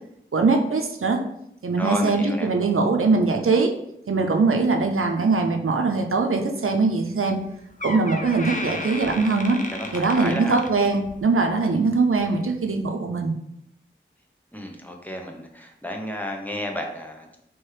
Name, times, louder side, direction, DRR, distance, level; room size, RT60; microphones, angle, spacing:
voice 1, 0.3-1.2 1.6-3.7 4.1-7.4 7.8-9.6 9.9-13.3, right 4 dB, 90° right, 3 dB, 0.6 m, -21 dB
voice 2, 1.8-2.5 9.7-10.6 14.5-17.4, equal, 10° left, 1 dB, 0.8 m, -32 dB
Door, 7.3-7.5 7.8-11.3 11.6-11.9 12.7-12.8, left 2 dB, 40° left, 0.6 m, -34 dB
3.5 x 3.1 x 4.8 m, 0.76 s
wide cardioid pair, 40°, 21 cm